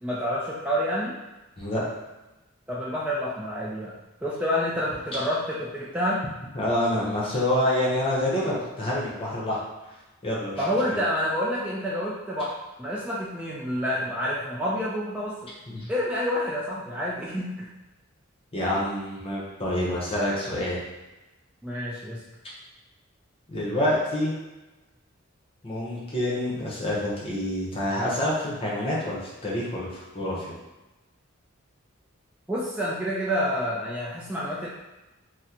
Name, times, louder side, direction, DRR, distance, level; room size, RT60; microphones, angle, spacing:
voice 1, 0.0-1.1 2.7-3.9 4.2-6.2 10.6-15.3 15.9-17.7 21.6-22.2 32.5-34.7, equal, 5° right, -7 dB, 0.3 m, -28 dB
voice 2, 6.5-9.6 10.2-10.6 15.7-15.9 18.5-20.8 23.5-24.3 25.6-30.5, left 1 dB, 25° left, -5 dB, 0.8 m, -27 dB
3.6 x 2.1 x 2.9 m, 1.1 s
head